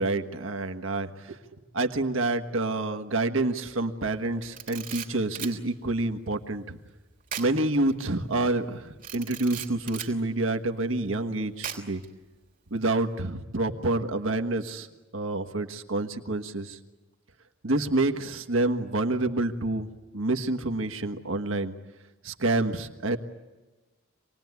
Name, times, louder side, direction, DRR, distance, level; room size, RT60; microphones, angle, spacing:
voice 1, 0.0-1.4 1.7-6.8 7.4-12.0 12.7-14.9 15.1-16.8 17.6-19.9 20.1-21.7 22.2-23.2, right 2 dB, 70° right, 6 dB, 1.5 m, -28 dB
Camera, 4.4-5.6 7.3-7.5 7.9-8.0 9.0-10.1 11.6-12.1, right 9 dB, 40° right, 3.2 m, -37 dB
27.0 x 20.0 x 9.5 m, 1.2 s
head